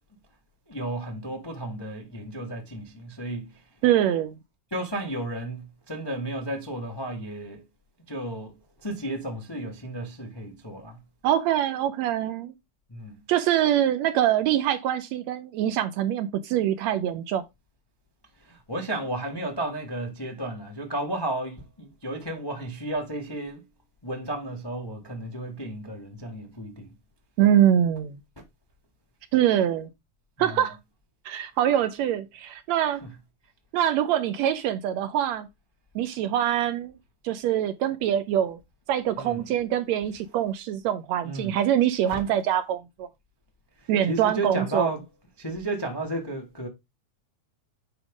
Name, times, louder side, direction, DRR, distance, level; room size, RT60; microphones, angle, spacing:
voice 1, 0.7-3.6 4.7-7.6 8.1-11.0 12.9-13.2 18.4-23.6 24.0-26.9 30.4-30.7 33.0-33.1 39.2-39.5 41.2-41.5 42.1-42.2 43.8-45.0 45.4-46.7, right 1 dB, 35° left, 0.4 m, -33 dB
voice 2, 3.8-4.3 11.2-12.5 13.3-17.4 27.4-28.2 29.3-29.9 30.4-30.8 31.3-33.0 33.7-35.5 36.0-36.9 37.2-38.6 38.9-43.1 43.9-44.9, right 11 dB, 80° right, 1.7 m, -24 dB
9.0 x 5.0 x 3.7 m
omnidirectional pair, 3.5 m